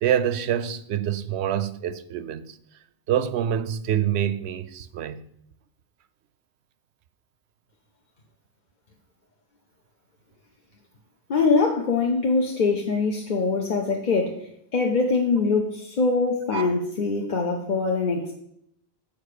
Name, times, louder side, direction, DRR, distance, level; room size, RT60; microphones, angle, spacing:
voice 1, 0.0-2.6 3.1-5.2 16.5-16.7, right 10 dB, 85° right, 0.8 m, -26 dB
voice 2, 11.3-18.3, left 4 dB, 50° left, 0.9 m, -23 dB
7.1 x 4.9 x 6.6 m
omnidirectional pair, 1.1 m